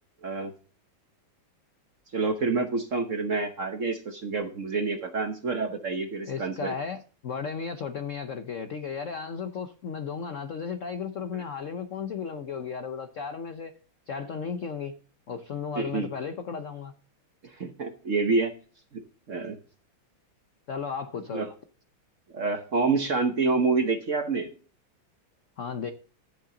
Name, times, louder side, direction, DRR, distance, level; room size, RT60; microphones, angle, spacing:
voice 1, 0.2-0.5 2.1-6.7 11.3-11.4 15.8-16.1 17.6-18.5 18.9-19.0 19.3-19.6 21.3-21.5 22.3-24.5, right 4 dB, 50° right, 1.0 m, -27 dB
voice 2, 6.2-13.7 14.1-15.0 15.3-16.9 20.7-21.5 25.6-25.9, left 6 dB, 70° left, 0.7 m, -34 dB
12.5 x 8.7 x 3.9 m
omnidirectional pair, 2.4 m